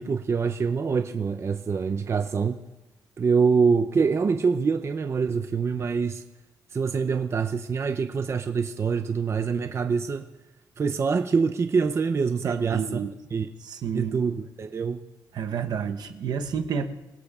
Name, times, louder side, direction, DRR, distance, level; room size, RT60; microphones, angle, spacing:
voice 1, 0.0-2.6 3.2-6.2 6.7-10.3 10.8-13.0 13.3-13.5 13.9-15.1, right 5 dB, 40° right, 8 dB, 0.6 m, -25 dB
voice 2, 12.4-13.1 13.6-14.2 15.3-16.9, right 7 dB, 70° right, 7 dB, 0.9 m, -30 dB
26.0 x 17.0 x 2.4 m, 1.1 s
cardioid pair, 115°, 7 cm